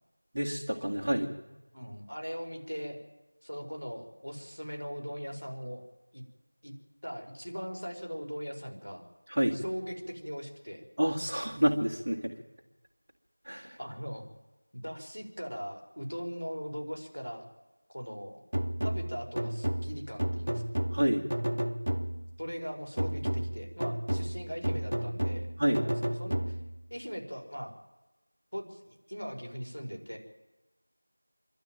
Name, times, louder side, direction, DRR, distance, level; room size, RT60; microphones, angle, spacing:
voice 1, 0.3-1.3 9.3-9.6 11.0-12.3 13.5-13.7 20.9-21.2 25.6-25.8, equal, 25° right, -3 dB, 2.0 m, -28 dB
voice 2, 1.7-3.0 3.4-5.8 6.1-6.2 6.6-6.7 7.0-9.0 9.5-10.8 13.8-14.2 14.7-17.5 17.9-18.4 18.8-20.8 22.4-26.6 26.9-27.7 28.5-30.2, equal, 80° left, 3 dB, 5.1 m, -40 dB
sound 1, 18.5-22.4 23.0-26.9, right 1 dB, 50° right, 0.7 m, -32 dB
26.0 x 12.0 x 9.1 m, 1.1 s
figure-of-eight pair, 175°, 0 cm